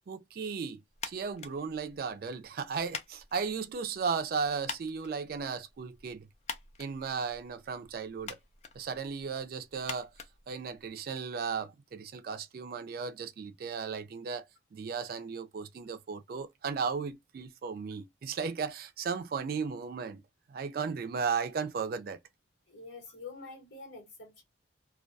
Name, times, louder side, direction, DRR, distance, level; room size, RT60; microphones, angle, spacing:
voice 1, 0.1-0.8 1.0-6.3 6.8-8.4 8.8-10.1 10.5-14.4 14.7-20.2 20.5-22.2, right 5 dB, 50° right, 0.3 m, -35 dB
sound 1, 0.9-11.2, left 5 dB, 35° left, 0.3 m, -47 dB
voice 2, 22.7-24.4, left 3 dB, 80° left, 1.2 m, -46 dB
2.2 x 2.2 x 2.5 m
head